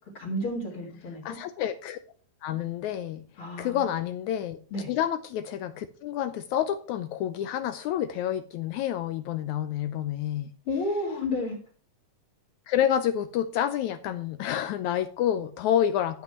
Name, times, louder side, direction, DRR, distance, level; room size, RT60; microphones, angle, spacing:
voice 1, 0.2-1.4 3.4-4.0 4.7-4.9 10.7-11.6, left 2 dB, 40° left, 0 dB, 3.5 m, -31 dB
voice 2, 1.3-2.0 2.4-3.2 3.6-4.6 4.9-10.5 12.7-16.2, left 10 dB, 80° left, 11 dB, 1.7 m, -28 dB
13.0 x 5.9 x 5.8 m, 0.41 s
omnidirectional pair, 4.0 m